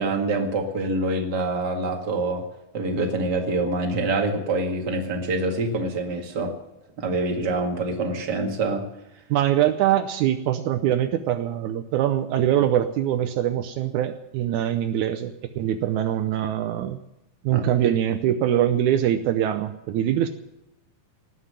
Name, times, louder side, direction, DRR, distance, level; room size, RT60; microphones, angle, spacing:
voice 1, 0.0-2.4 2.7-6.6 7.0-8.9 17.5-17.7, right 2 dB, 35° right, 2 dB, 1.9 m, -25 dB
voice 2, 9.3-17.0 17.4-20.3, right 11 dB, 85° right, 8 dB, 1.7 m, -23 dB
18.5 x 7.6 x 10.0 m, 0.88 s
omnidirectional pair, 4.3 m